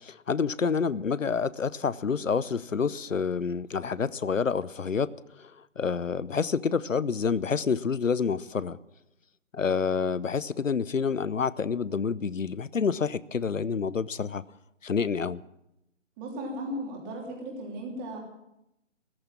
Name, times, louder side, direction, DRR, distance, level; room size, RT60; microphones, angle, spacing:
voice 1, 0.0-5.1 5.8-8.8 9.5-14.4 14.8-15.4, left 5 dB, 85° left, 0.7 m, -28 dB
voice 2, 16.2-18.2, equal, 15° right, 3.1 m, -36 dB
14.5 x 13.5 x 7.3 m
figure-of-eight pair, 145°, 38 cm